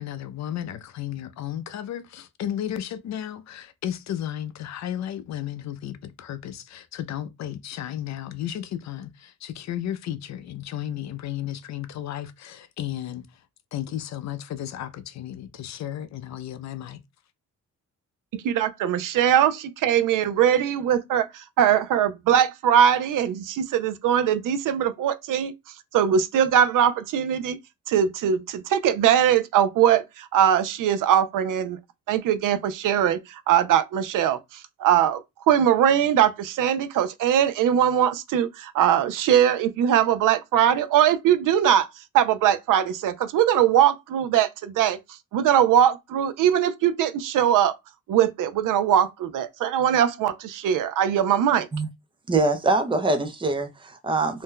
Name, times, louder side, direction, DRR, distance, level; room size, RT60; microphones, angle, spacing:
voice 1, 0.0-13.2 13.7-17.0, left 11 dB, 60° left, 0.4 m, -33 dB
voice 2, 18.3-25.5 25.9-27.6 27.9-31.8 32.1-34.4 34.8-35.2 35.5-41.9 42.1-45.0 45.3-47.7 48.1-51.7, right 9 dB, 85° right, 0.5 m, -21 dB
voice 3, 52.3-54.4, right 3 dB, 15° right, 0.4 m, -23 dB
2.6 x 2.1 x 3.6 m
wide cardioid pair, 165°, 31 cm